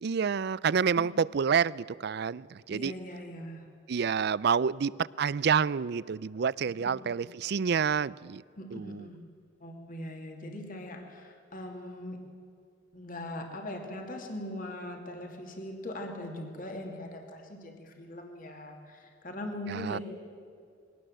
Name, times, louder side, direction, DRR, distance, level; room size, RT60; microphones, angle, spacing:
voice 1, 0.0-2.9 3.9-4.9 5.2-8.4 8.7-9.0 19.7-20.0, right 6 dB, 60° right, 0.4 m, -28 dB
voice 2, 2.7-3.7 6.7-7.2 8.6-9.3 9.6-12.3 12.9-20.0, left 1 dB, 50° left, 2.6 m, -41 dB
21.5 x 18.0 x 7.8 m
head